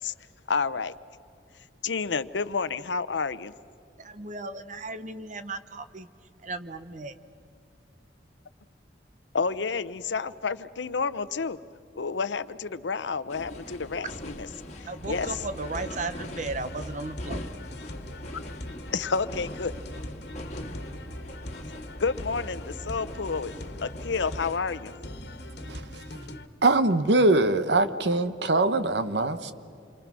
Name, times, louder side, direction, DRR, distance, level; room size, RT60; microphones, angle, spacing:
voice 1, 0.5-0.9 1.8-3.5 9.3-11.6 12.0-14.5 14.8-15.4 18.9-19.7 22.0-23.5 23.8-24.9, left 5 dB, 85° left, 0.7 m, -30 dB
voice 2, 4.0-6.1 6.4-7.2 14.8-17.4, right 3 dB, 45° right, 1.1 m, -35 dB
sound 1, 13.3-24.6, equal, 40° left, 1.7 m, -41 dB
sound 2, 15.0-26.5, left 1 dB, 65° left, 1.6 m, -41 dB
voice 3, 26.6-29.5, right 2 dB, 70° right, 1.1 m, -22 dB
28.5 x 24.5 x 6.2 m
head